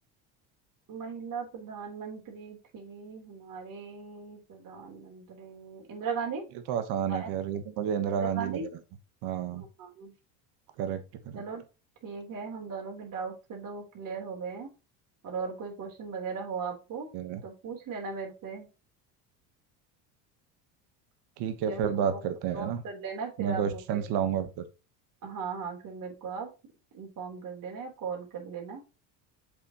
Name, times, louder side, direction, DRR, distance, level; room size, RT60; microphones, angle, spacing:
voice 1, 0.9-6.4 7.1-7.3 8.0-8.7 9.6-10.1 11.3-11.6 12.0-14.7 15.2-17.1 17.4-18.7 21.7-21.8 22.1-22.2 22.5-24.1 25.2-26.5 26.9-28.8, right 5 dB, 50° right, -1 dB, 3.9 m, -38 dB
voice 2, 6.7-8.7 9.2-9.6 10.8-11.4 17.1-17.4 21.4-22.8 23.4-24.5, right 8 dB, 65° right, 9 dB, 1.4 m, -30 dB
7.6 x 6.4 x 3.1 m, 0.29 s
supercardioid pair, 105°, 42 cm